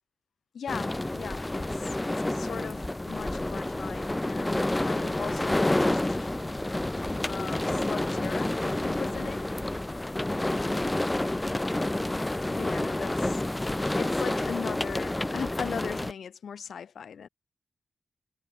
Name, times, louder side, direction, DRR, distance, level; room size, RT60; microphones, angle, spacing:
voice 1, 0.5-6.3 7.3-9.5 12.5-13.4 14.0-17.3, left 7 dB, 80° left, 4.5 m, -39 dB
sound 1, 0.7-16.1, left 1 dB, 20° left, 1.7 m, -29 dB
cardioid pair, 60°, 0 cm